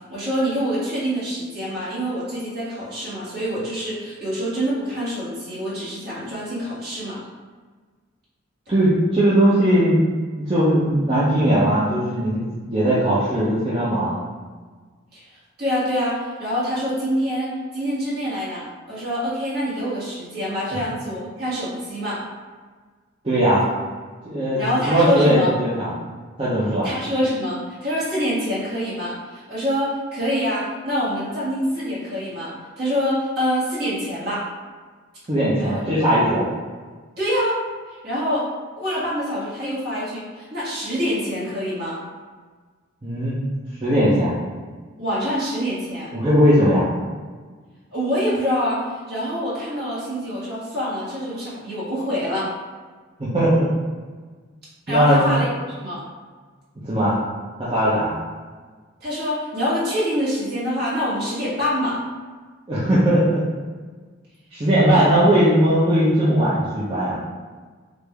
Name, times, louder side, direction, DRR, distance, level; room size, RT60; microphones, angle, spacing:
voice 1, 0.1-7.2 15.1-15.2 15.6-22.2 24.6-25.5 26.8-34.4 35.6-35.8 37.2-37.6 38.0-38.4 38.8-42.0 45.0-46.1 47.9-48.8 49.1-52.5 54.9-55.5 55.8-56.0 59.0-62.0 64.9-65.2, equal, 50° right, -9 dB, 1.5 m, -25 dB
voice 2, 8.7-10.0 10.5-12.4 12.7-14.1 23.2-23.6 24.2-25.9 26.4-26.9 35.3-36.4 43.0-43.3 43.8-44.4 46.1-46.9 53.2-53.7 54.9-55.3 56.8-57.2 57.6-58.1 62.7-63.4 64.5-67.2, equal, 25° right, -10 dB, 0.6 m, -18 dB
3.4 x 2.6 x 3.3 m, 1.5 s
head